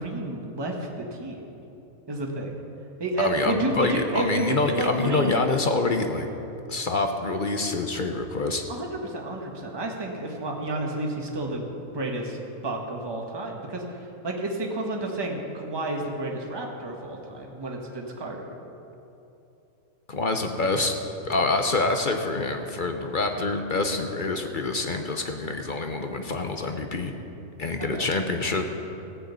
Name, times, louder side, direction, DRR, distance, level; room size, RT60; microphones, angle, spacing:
voice 1, 0.0-1.4 2.1-2.5 3.0-5.4 8.7-11.7 11.9-12.4 12.6-18.5 27.8-28.1, right 2 dB, 20° right, 0 dB, 1.2 m, -31 dB
voice 2, 3.2-6.3 6.7-8.6 20.1-20.9 21.2-27.1 27.6-28.7, left 3 dB, 45° left, 5 dB, 0.7 m, -26 dB
15.5 x 6.3 x 8.2 m, 2.9 s
omnidirectional pair, 1.5 m